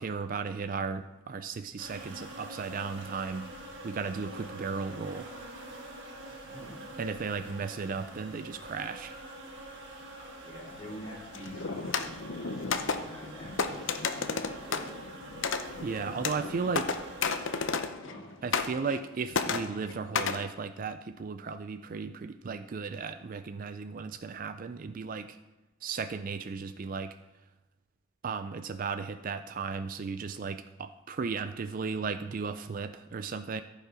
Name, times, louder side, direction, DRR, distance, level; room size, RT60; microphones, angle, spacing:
voice 1, 0.0-3.5 3.8-5.3 7.0-9.2 15.8-17.0 18.4-25.4 25.8-27.1 28.2-33.6, right 5 dB, 40° right, 10 dB, 0.3 m, -35 dB
sound 1, 1.8-17.7, right 1 dB, 60° right, 1.7 m, -45 dB
voice 2, 6.4-6.8 10.2-12.1 12.6-15.0 18.0-18.4, equal, 25° left, -5 dB, 4.2 m, -46 dB
sound 2, 11.3-18.2 18.5-19.1 19.3-20.4, left 5 dB, 60° left, 0.7 m, -33 dB
14.5 x 5.4 x 4.9 m, 1.1 s
head